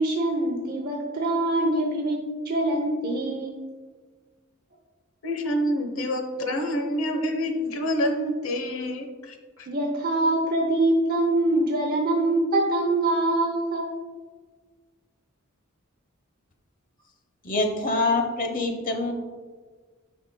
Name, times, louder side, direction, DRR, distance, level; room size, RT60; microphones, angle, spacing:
voice 1, 0.0-2.2 2.4-3.6 9.7-13.9, right 2 dB, 45° right, -1 dB, 0.8 m, -24 dB
voice 2, 5.2-9.7, equal, 75° left, 4 dB, 1.0 m, -27 dB
voice 3, 17.4-19.1, left 2 dB, 40° left, 4 dB, 0.9 m, -25 dB
9.7 x 5.8 x 2.3 m, 1.4 s
head